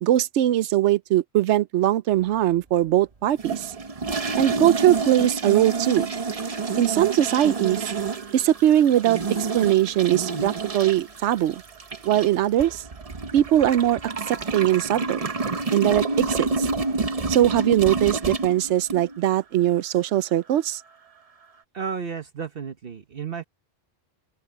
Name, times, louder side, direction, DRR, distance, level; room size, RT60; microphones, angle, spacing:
voice 1, 0.0-3.7 4.4-6.1 6.8-7.9 8.3-9.2 9.5-11.6 12.0-12.8 13.3-14.0 14.3-15.3 15.7-16.7 17.3-20.8, right 12 dB, 80° right, 0.9 m, -21 dB
sound 1, 3.4-19.2, right 3 dB, 35° right, 0.9 m, -29 dB
voice 2, 21.7-23.4, right 6 dB, 55° right, 1.2 m, -32 dB
open air
omnidirectional pair, 1.2 m